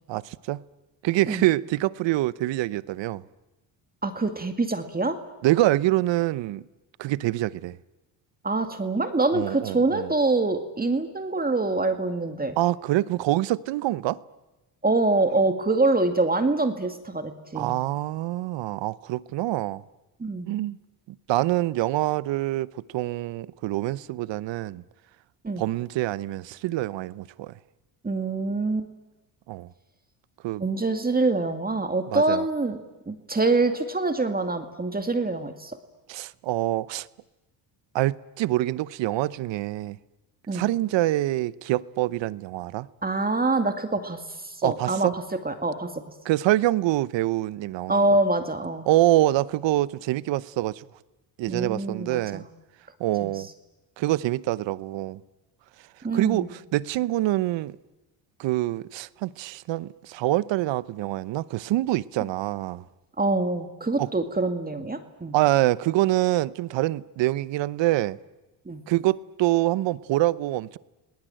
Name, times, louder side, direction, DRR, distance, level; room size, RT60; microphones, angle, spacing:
voice 1, 0.1-0.6 1.0-3.2 5.4-6.6 7.0-7.8 9.3-10.1 12.6-14.2 17.5-19.8 20.5-20.8 21.3-24.8 25.6-27.5 29.5-29.7 30.4-30.6 32.1-32.4 36.1-37.1 37.9-40.0 40.5-42.9 44.6-45.1 46.3-48.0 48.9-50.8 51.4-52.4 53.0-53.5 54.0-55.2 56.1-57.8 58.4-62.8 64.0-64.1 65.3-68.2 68.9-70.8, right 16 dB, 65° right, 0.9 m, -25 dB
voice 2, 4.0-5.2 8.4-12.6 14.8-17.7 20.2-20.5 25.4-25.6 28.0-28.9 30.6-32.8 33.1-35.8 40.5-40.7 43.0-46.1 47.9-48.9 51.5-52.4 53.2-53.4 56.0-56.5 63.2-65.3 68.7-68.8, right 2 dB, 20° right, 2.2 m, -25 dB
29.5 x 19.0 x 9.0 m
supercardioid pair, 80°, 48 cm